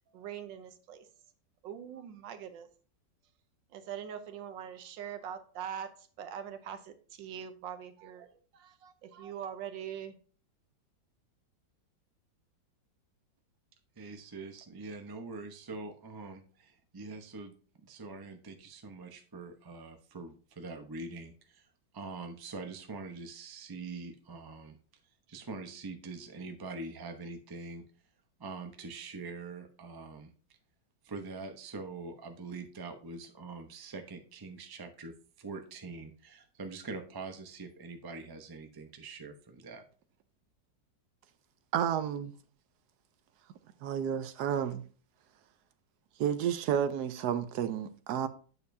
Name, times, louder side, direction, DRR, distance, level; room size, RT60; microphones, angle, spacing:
voice 1, 0.1-1.1 1.6-2.7 3.7-10.1, right 9 dB, 90° right, 1.5 m, -43 dB
voice 2, 14.0-21.6 21.9-24.8 25.3-27.8 28.4-30.3 31.0-39.8, right 3 dB, 35° right, 0.4 m, -44 dB
voice 3, 41.7-42.3 43.8-44.8 46.2-48.3, right 9 dB, 70° right, 1.2 m, -31 dB
8.5 x 6.8 x 2.7 m
omnidirectional pair, 2.0 m